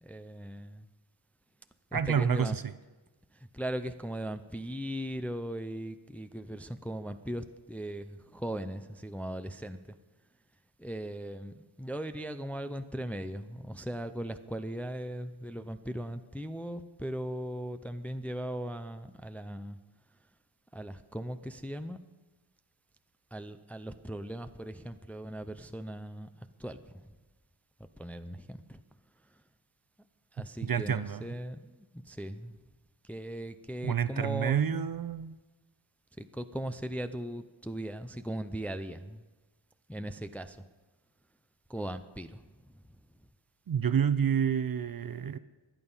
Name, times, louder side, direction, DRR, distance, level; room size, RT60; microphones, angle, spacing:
voice 1, 0.0-0.9 1.9-2.6 3.3-10.0 10.8-19.8 20.7-22.0 23.3-27.2 28.0-28.8 30.3-32.6 33.0-34.9 36.2-39.2 39.9-40.6 41.7-42.7, right 1 dB, 5° left, 9 dB, 0.5 m, -38 dB
voice 2, 1.9-2.7 30.4-31.2 33.8-35.3 43.7-45.4, right 8 dB, 45° right, 14 dB, 0.6 m, -29 dB
23.0 x 9.0 x 5.6 m, 1.2 s
wide cardioid pair, 140°, 50 cm